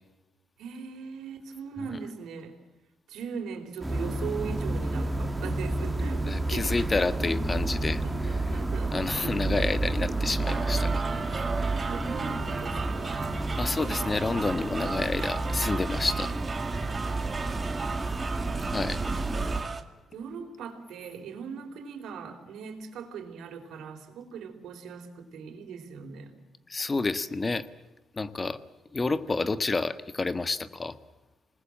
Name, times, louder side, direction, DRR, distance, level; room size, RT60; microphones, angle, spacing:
voice 1, 0.6-2.5 3.1-7.4 8.0-9.7 10.1-10.2 11.2-11.3 11.9-13.2 20.1-26.3, right 6 dB, 80° right, 5 dB, 4.5 m, -39 dB
sound 1, 3.8-19.6, right 2 dB, 10° right, 2.2 m, -30 dB
voice 2, 6.2-8.6 8.9-11.1 13.6-16.4 18.6-19.0 26.7-27.7 28.1-28.6 28.9-31.0, left 3 dB, 25° left, 12 dB, 1.4 m, -29 dB
sound 2, 10.4-19.8, right 4 dB, 30° right, 2.2 m, -36 dB
28.0 x 20.0 x 7.6 m, 1.2 s
cardioid pair, 90°, 0 cm